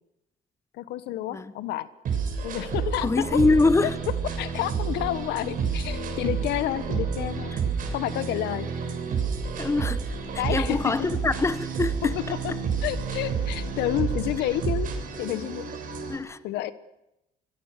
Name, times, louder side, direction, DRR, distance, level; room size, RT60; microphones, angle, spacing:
voice 1, 0.8-1.9 2.4-3.1 3.8-3.9 4.4-7.5 7.9-8.7 10.4-10.8 12.4-12.5 12.8-14.9 15.2-15.6 16.4-16.7, left 13 dB, 85° left, 1.4 m, -29 dB
sound 1, 2.0-16.2, right 6 dB, 55° right, 7.0 m, -30 dB
voice 2, 3.0-3.9 7.5-7.6 9.6-10.0 10.5-12.1 16.1-16.4, left 3 dB, 15° left, 1.1 m, -24 dB
26.5 x 22.5 x 6.7 m
cardioid pair, 110°, 17 cm